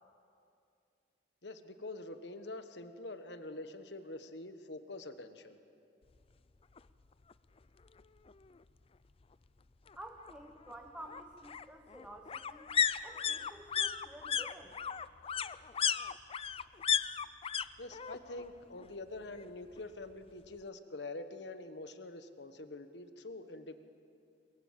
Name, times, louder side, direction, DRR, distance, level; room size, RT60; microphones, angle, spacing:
voice 1, 1.4-5.6 17.8-23.8, left 2 dB, 80° left, 9 dB, 1.4 m, -45 dB
sound 1, 6.8-6.9 7.2-7.3 7.6-8.6 9.9-17.7 17.9-18.5 18.8-19.8 20.1-20.2, left 8 dB, 35° left, 0.5 m, -35 dB
voice 2, 9.9-12.7 13.0-14.8, right 1 dB, 5° right, 2 dB, 1.3 m, -51 dB
22.5 x 22.5 x 7.6 m, 2.5 s
head